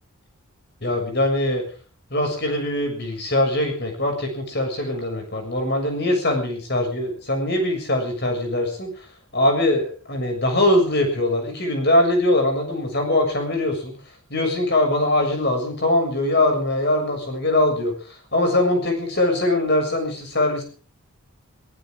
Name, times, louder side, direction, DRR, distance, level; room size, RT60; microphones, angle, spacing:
voice 1, 0.8-1.6 2.1-9.1 9.3-13.9 14.3-20.6, left 1 dB, 50° left, 4 dB, 6.9 m, -22 dB
23.5 x 16.0 x 3.8 m, 0.40 s
head